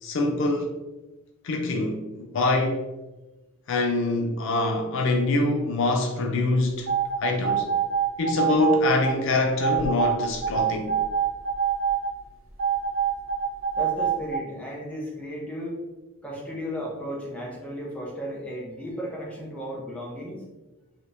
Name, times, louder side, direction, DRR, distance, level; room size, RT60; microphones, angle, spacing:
voice 1, 0.0-0.8 1.4-2.0 2.3-2.8 3.7-6.9 7.2-7.7 8.2-11.0, left 2 dB, 55° left, 3 dB, 0.4 m, -24 dB
sound 1, 6.9-9.1 9.6-12.1 12.6-14.4, right 7 dB, 60° right, 0.7 m, -25 dB
voice 2, 13.8-15.8 16.2-20.4, equal, 5° left, -4 dB, 0.6 m, -34 dB
3.3 x 2.8 x 2.5 m, 1.1 s
head